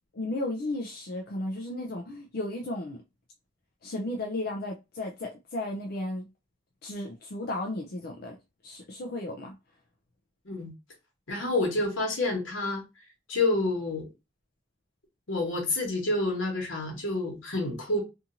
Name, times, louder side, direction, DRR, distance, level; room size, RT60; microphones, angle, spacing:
voice 1, 0.1-3.0 3.8-6.2 6.8-8.4 8.6-9.6, left 1 dB, 55° left, 0.4 m, -34 dB
voice 2, 11.3-12.8 13.3-14.1 15.3-18.0, left 2 dB, 80° left, 1.2 m, -28 dB
2.8 x 2.5 x 2.5 m
head